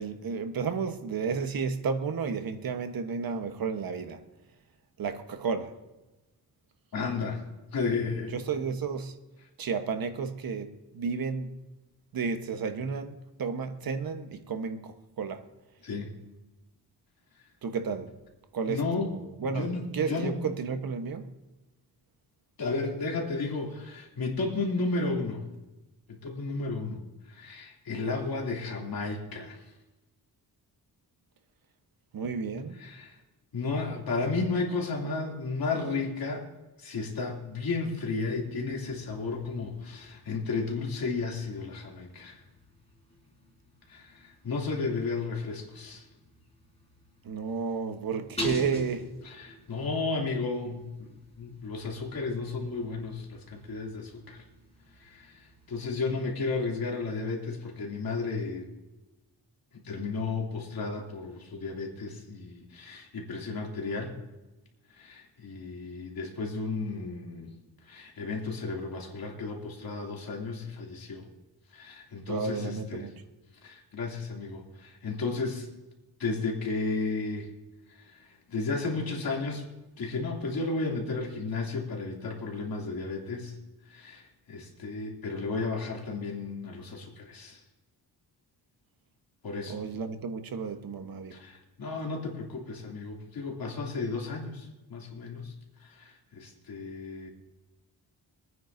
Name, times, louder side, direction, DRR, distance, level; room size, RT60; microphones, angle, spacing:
voice 1, 0.0-4.2 5.0-5.7 8.3-9.2 9.6-11.5 12.1-15.5 17.6-18.1 18.5-21.3 32.1-32.8 47.2-49.1 72.3-73.1 89.7-91.4, right 5 dB, 60° right, 1.2 m, -32 dB
voice 2, 6.9-7.4 7.7-8.3 15.8-16.1 18.7-19.1 19.5-20.4 22.6-25.4 26.1-27.0 27.3-29.6 32.8-33.2 33.5-36.5 36.8-42.4 43.9-46.0 49.2-54.4 55.0-55.4 55.7-58.7 59.8-64.2 64.9-67.5 67.8-71.2 71.7-73.1 73.6-75.7 76.2-77.5 78.0-79.6 80.0-83.5 83.9-87.6 89.4-89.8 91.3-95.5 95.8-97.3, left 3 dB, 65° left, 2.8 m, -33 dB
sound 1, 38.2-56.8, left 2 dB, 15° left, 5.0 m, -46 dB
24.5 x 9.5 x 2.7 m
wide cardioid pair, 135°, 39 cm